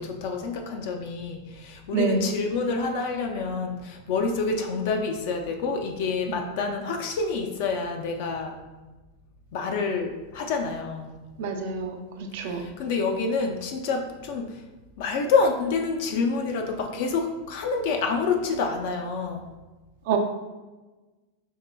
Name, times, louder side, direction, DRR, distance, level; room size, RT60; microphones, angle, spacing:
voice 1, 0.0-8.6 9.5-11.1 12.4-14.6 15.0-19.5, left 4 dB, 60° left, 3 dB, 0.4 m, -27 dB
voice 2, 1.9-2.3 6.3-6.5 11.4-12.7 20.1-20.2, right 5 dB, 65° right, 4 dB, 0.5 m, -27 dB
5.3 x 2.2 x 2.2 m, 1.2 s
supercardioid pair, 130°, 0 cm